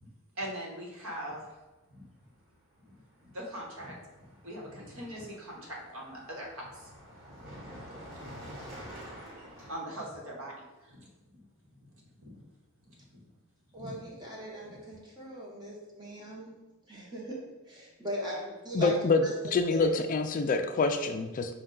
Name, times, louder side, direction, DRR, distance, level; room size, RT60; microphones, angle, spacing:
voice 1, 0.4-1.4 1.9-2.0 2.8-4.0 4.4-6.9 8.8-9.4 9.7-11.4 11.8-11.9 12.2-12.5 12.9-13.2 13.8-14.1 14.6-14.8, equal, 65° right, -2 dB, 1.0 m, -42 dB
Car passing by, 2.2-2.5 2.7-9.7, equal, 40° right, 1.2 m, -48 dB
voice 2, 13.7-16.6 16.9-18.9 19.2-19.9, equal, 20° right, -4 dB, 0.8 m, -39 dB
voice 3, 18.7-21.5, left 3 dB, 40° left, 7 dB, 0.3 m, -27 dB
5.4 x 2.2 x 3.8 m, 1.1 s
head